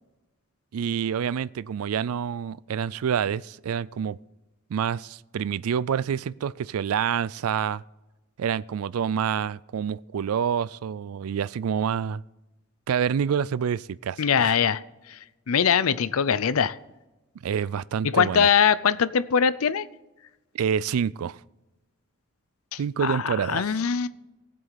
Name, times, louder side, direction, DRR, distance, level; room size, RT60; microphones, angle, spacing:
voice 1, 0.7-4.2 4.7-7.8 8.4-12.2 12.9-14.6 17.4-18.5 20.5-21.4 22.8-23.6, right 7 dB, 85° right, 0.4 m, -27 dB
voice 2, 14.2-14.8 15.5-16.7 18.0-19.9 22.7-24.1, left 7 dB, 80° left, 0.5 m, -22 dB
18.5 x 7.7 x 4.0 m
head